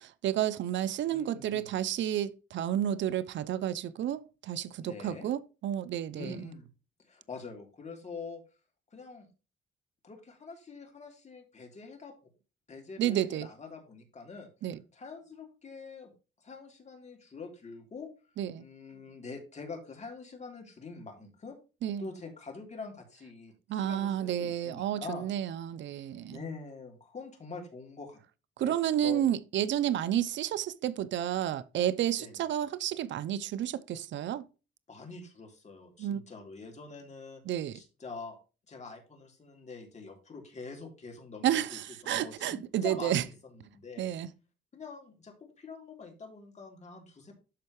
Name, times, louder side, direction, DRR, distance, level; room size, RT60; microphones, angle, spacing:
voice 1, 0.0-6.4 13.0-13.5 14.6-14.8 18.4-18.6 21.8-22.1 23.7-26.4 28.6-34.4 36.0-36.2 37.5-37.8 41.4-43.2 44.0-44.3, right 11 dB, 70° right, 0.7 m, -31 dB
voice 2, 1.1-1.7 4.8-5.3 6.1-6.7 7.0-8.4 8.9-9.3 10.0-12.1 12.7-14.5 14.9-16.1 16.4-18.1 18.6-21.6 22.0-25.3 26.3-28.2 28.6-28.7 29.0-29.3 32.2-32.4 34.9-37.4 37.7-38.4 38.7-41.8 42.1-44.1 44.7-47.4, left 4 dB, 35° left, 3.4 m, -45 dB
12.5 x 4.4 x 3.1 m
cardioid pair, 90°, 20 cm